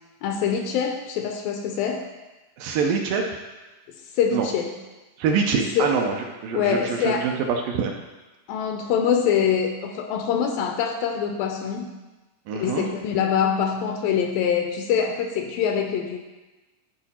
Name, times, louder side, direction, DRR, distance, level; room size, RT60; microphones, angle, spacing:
voice 1, 0.2-2.1 4.1-4.7 5.8-5.9 6.5-7.3 8.5-11.9 12.5-16.2, left 7 dB, 80° left, 4 dB, 2.2 m, -24 dB
voice 2, 2.6-3.2 4.3-4.5 5.2-6.2 6.4-7.9 12.5-12.9, right 5 dB, 80° right, 2 dB, 2.2 m, -24 dB
11.5 x 4.8 x 4.3 m, 1.1 s
omnidirectional pair, 4.3 m